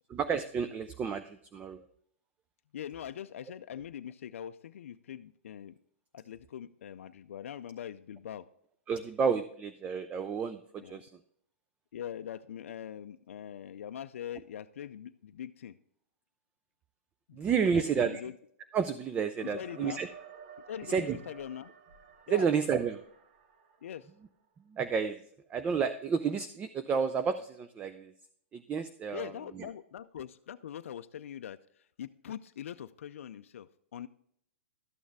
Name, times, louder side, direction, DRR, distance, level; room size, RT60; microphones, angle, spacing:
voice 1, 0.1-1.8 8.9-11.1 17.3-18.2 18.7-20.1 20.9-21.2 22.3-23.0 24.7-25.2 25.5-28.1 28.5-29.7, right 6 dB, 20° right, 11 dB, 0.4 m, -31 dB
voice 2, 2.7-5.7 6.1-8.5 10.8-11.0 11.9-15.8 17.3-18.3 19.4-20.0 20.7-21.7 22.3-22.5 23.8-24.1 29.1-34.1, left 9 dB, 80° left, 10 dB, 0.4 m, -42 dB
sound 1, 19.4-24.2, right 7 dB, 50° right, 1.2 m, -53 dB
12.5 x 6.4 x 3.4 m, 0.68 s
hypercardioid pair, 135°, 7 cm